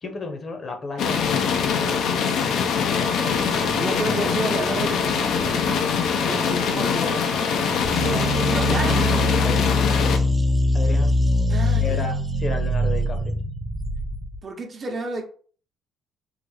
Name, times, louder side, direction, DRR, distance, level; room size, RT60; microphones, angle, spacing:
voice 1, 0.0-1.7 8.7-9.0 9.4-9.7 10.7-11.1 11.8-13.3, left 3 dB, 40° left, 5 dB, 0.8 m, -33 dB
sound 1, 1.0-10.2, left 6 dB, 65° left, 0.5 m, -23 dB
voice 2, 1.6-2.9 3.8-5.8 6.2-7.3 7.9-9.3 11.5-12.1 14.4-15.2, right 3 dB, 40° right, 2 dB, 0.9 m, -32 dB
Wind instrument woodwind instrument, 2.9-9.3, right 6 dB, 70° right, 0.9 m, -39 dB
sound 2, 7.8-14.4, left 1 dB, 15° right, 0.5 m, -22 dB
3.8 x 2.0 x 3.2 m, 0.43 s
cardioid pair, 85°, 0 cm